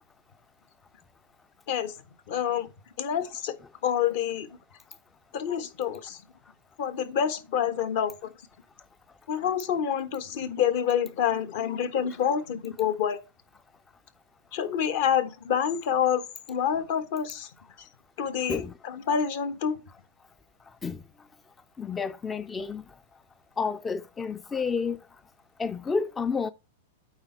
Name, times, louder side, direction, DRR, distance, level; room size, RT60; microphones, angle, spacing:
voice 1, 2.3-2.7 3.0-3.6 3.8-4.5 5.3-6.2 6.8-8.1 9.3-13.2 14.5-17.5 18.2-19.8, left 8 dB, 60° left, 1.3 m, -27 dB
voice 2, 21.8-22.8 23.6-25.0 25.6-26.5, left 5 dB, 15° left, 0.4 m, -30 dB
8.9 x 4.1 x 4.4 m
hypercardioid pair, 115°, 0 cm